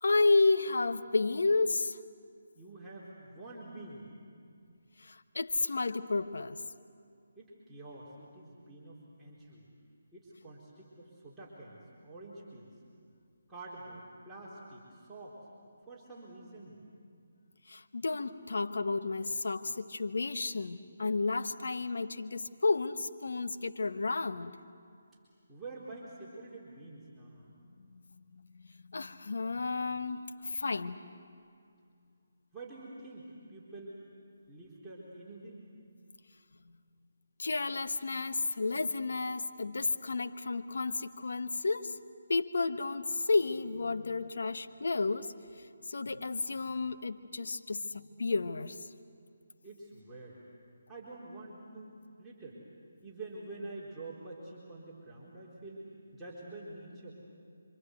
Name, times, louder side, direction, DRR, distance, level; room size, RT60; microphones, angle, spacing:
voice 1, 0.0-2.0 5.0-6.6 17.7-24.5 27.8-28.0 28.3-28.4 28.9-30.2 30.4-31.0 37.4-42.0 42.3-45.3 45.9-48.8, left 3 dB, 70° left, 1.2 m, -31 dB
voice 2, 2.6-4.1 7.4-9.7 10.1-12.7 13.5-15.4 15.9-16.7 25.5-27.5 32.5-34.0 34.5-35.6 49.6-50.4 50.9-52.6 53.0-55.8 56.1-57.1, right 2 dB, 5° right, 4.1 m, -47 dB
27.0 x 26.0 x 8.1 m
figure-of-eight pair, 155°, 0 cm